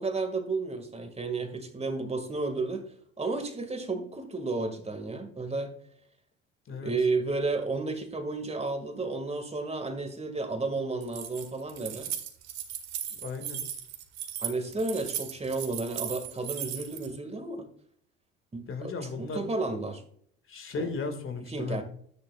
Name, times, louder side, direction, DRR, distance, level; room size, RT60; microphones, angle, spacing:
voice 1, 0.0-2.9 3.2-5.7 6.7-12.1 14.4-17.7 18.5-20.0 20.8-20.9 21.4-21.8, right 3 dB, 20° right, 7 dB, 1.9 m, -32 dB
Keys jangling, 11.0-17.1, right 10 dB, 60° right, 1.8 m, -37 dB
voice 2, 13.1-13.7 18.7-19.5 20.5-21.8, left 4 dB, 40° left, 7 dB, 1.9 m, -35 dB
12.0 x 10.5 x 2.3 m, 0.63 s
hypercardioid pair, 65°, 31 cm